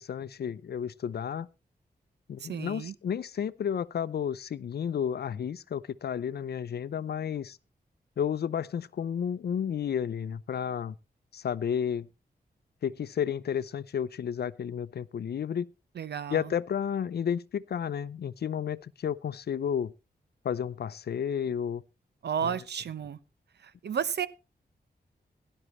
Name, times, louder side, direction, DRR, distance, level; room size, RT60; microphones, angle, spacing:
voice 1, 0.0-1.5 2.3-7.6 8.2-10.9 11.3-12.1 12.8-15.7 16.3-19.9 20.4-21.8 22.4-22.6, left 8 dB, 75° left, 0.6 m, -32 dB
voice 2, 2.4-2.9 16.0-16.5 22.2-23.2 23.6-24.3, right 8 dB, 85° right, 0.8 m, -32 dB
17.0 x 11.0 x 3.1 m
wide cardioid pair, 155°, 17 cm